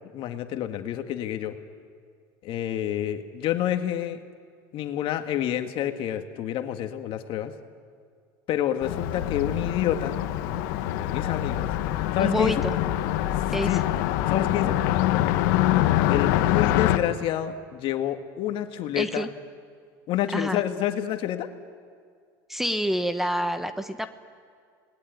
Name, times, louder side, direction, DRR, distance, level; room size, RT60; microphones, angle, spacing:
voice 1, 0.1-1.5 2.4-4.2 4.7-7.5 8.5-10.2 10.9-11.7 12.1-12.6 13.6-13.8 14.3-14.7 16.1-19.3 20.1-21.5, left 11 dB, 55° left, 7 dB, 1.9 m, -28 dB
Car passing by, 8.8-17.0, left 13 dB, 75° left, 1.4 m, -25 dB
voice 2, 12.2-12.7 13.5-13.8 18.9-19.3 20.3-20.6 22.5-24.1, equal, 5° right, 10 dB, 1.2 m, -27 dB
28.5 x 20.5 x 9.5 m, 2.1 s
supercardioid pair, 105°, 11 cm